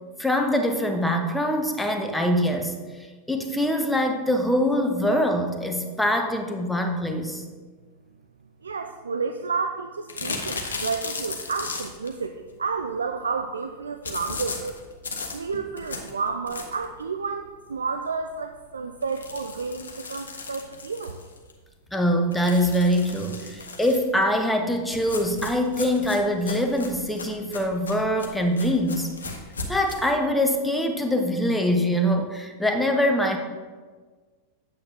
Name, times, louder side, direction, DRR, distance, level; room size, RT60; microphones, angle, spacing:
voice 1, 0.2-2.7 3.3-7.4 21.9-29.1 29.7-33.4, equal, 5° left, 4 dB, 0.9 m, -23 dB
voice 2, 8.6-14.8 15.3-21.2, right 5 dB, 70° right, 6 dB, 0.4 m, -31 dB
sound 1, 10.1-12.2 14.0-17.0 17.4-17.5 17.8-17.9 18.2-18.3 19.0-21.5 22.3-24.1 24.9-30.0, left 4 dB, 70° left, 0.9 m, -36 dB
8.5 x 7.8 x 2.8 m, 1.4 s
figure-of-eight pair, 90°, 0 cm